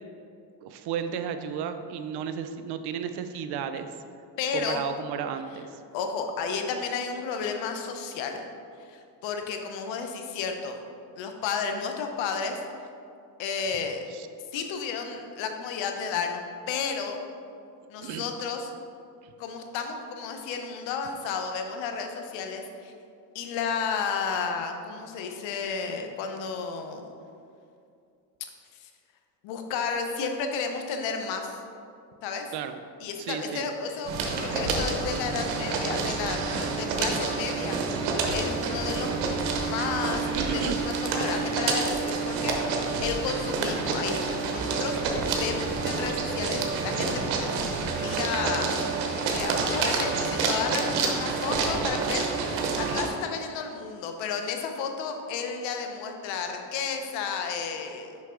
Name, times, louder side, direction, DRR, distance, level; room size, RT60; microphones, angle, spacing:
voice 1, 0.6-3.9 4.5-5.8 14.1-14.3 18.0-18.3 32.5-32.8 33.2-33.7 40.0-40.8, right 8 dB, 60° right, 9 dB, 0.6 m, -33 dB
voice 2, 4.4-4.8 5.9-8.5 8.8-10.8 11.2-12.9 13.4-14.0 14.5-16.4 16.7-17.2 17.9-18.7 19.4-22.9 23.3-27.1 28.8-28.9 29.4-31.6 32.2-32.5 33.0-37.8 38.3-47.2 48.0-48.7 49.3-58.2, left 5 dB, 80° left, 5 dB, 0.9 m, -32 dB
sound 1, 34.0-53.1, right 4 dB, 85° right, 1.0 m, -28 dB
6.3 x 5.4 x 3.7 m, 2.5 s
cardioid pair, 100°, 44 cm